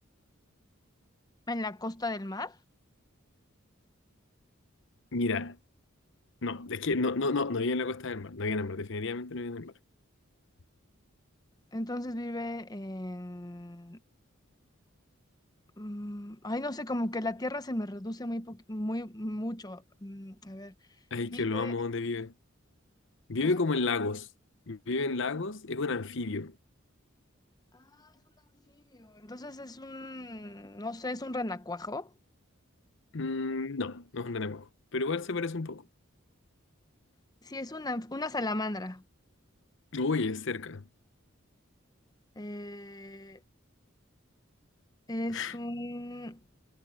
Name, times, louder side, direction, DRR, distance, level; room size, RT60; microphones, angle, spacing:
voice 1, 1.5-2.5 11.7-14.0 15.8-20.7 21.2-21.7 23.4-23.5 27.7-28.1 28.9-32.1 37.4-39.0 42.4-43.4 45.1-46.4, left 1 dB, 20° left, 1.0 m, -36 dB
voice 2, 5.1-5.6 6.4-9.7 21.1-22.3 23.3-24.3 24.7-26.5 33.1-35.8 39.9-40.8 45.3-45.5, left 3 dB, 65° left, 0.9 m, -31 dB
head